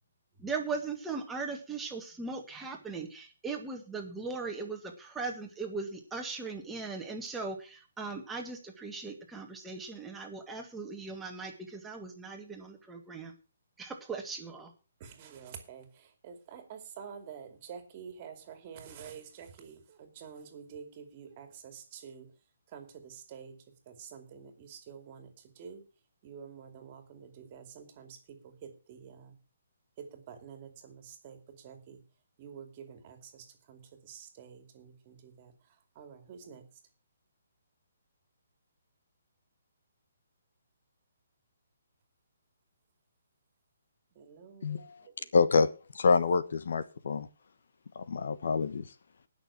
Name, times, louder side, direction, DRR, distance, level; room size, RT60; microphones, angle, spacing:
voice 1, 0.4-13.3 13.8-14.7, right 4 dB, 5° right, 2 dB, 1.7 m, -39 dB
voice 2, 15.0-22.3 22.7-25.8 26.2-29.4 30.0-32.0 32.4-36.8 44.1-45.3, right 7 dB, 25° right, 7 dB, 2.5 m, -49 dB
voice 3, 45.3-45.7 45.9-47.3 47.9-48.9, left 4 dB, 60° left, 13 dB, 1.2 m, -26 dB
18.5 x 6.5 x 5.9 m, 0.33 s
hypercardioid pair, 175°, 0 cm